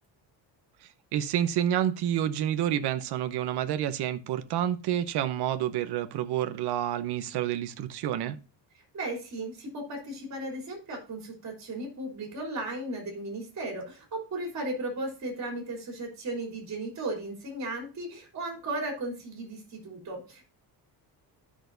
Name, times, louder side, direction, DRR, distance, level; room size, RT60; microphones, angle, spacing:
voice 1, 1.1-8.4, right 11 dB, 60° right, 0.9 m, -29 dB
voice 2, 8.9-20.4, right 2 dB, 35° right, 3.6 m, -36 dB
12.5 x 6.3 x 2.6 m
cardioid pair, 175°, 45 cm